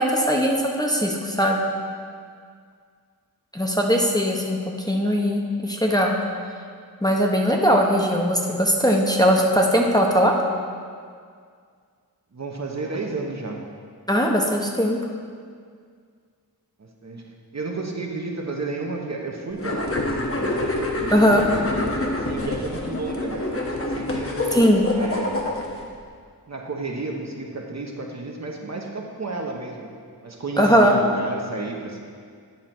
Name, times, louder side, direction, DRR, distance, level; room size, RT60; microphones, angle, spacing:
voice 1, 0.0-1.6 3.5-4.6 4.9-6.1 7.0-10.3 14.1-15.0 21.1-21.4 24.5-24.8 30.6-30.9, equal, 10° left, -1 dB, 0.8 m, -19 dB
voice 2, 12.3-13.7 16.8-20.8 21.1-24.5 24.9-25.6 26.5-29.9 30.2-32.0, right 3 dB, 45° right, 1 dB, 0.9 m, -32 dB
sound 1, 19.6-25.8, left 2 dB, 35° left, 1.1 m, -27 dB
9.4 x 3.9 x 5.9 m, 2.1 s
wide cardioid pair, 60°, 36 cm